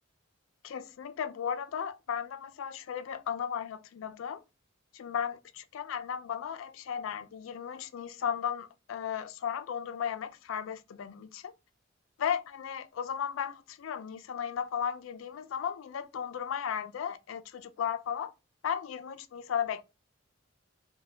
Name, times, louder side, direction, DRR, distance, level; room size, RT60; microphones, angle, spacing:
voice 1, 0.6-4.4 4.9-11.5 12.2-18.3 18.6-19.8, left 8 dB, 80° left, 0.3 m, -35 dB
2.2 x 2.0 x 3.7 m
head